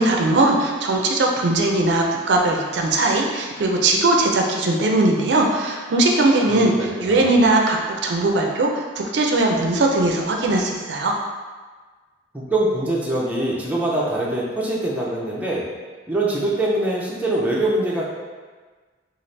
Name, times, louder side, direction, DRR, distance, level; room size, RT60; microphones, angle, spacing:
voice 1, 0.0-11.1, right 2 dB, 65° right, 1 dB, 0.4 m, -19 dB
voice 2, 6.5-7.4 12.3-15.7 16.1-18.0, right 1 dB, 10° right, -5 dB, 0.5 m, -23 dB
4.1 x 2.4 x 3.2 m, 1.4 s
head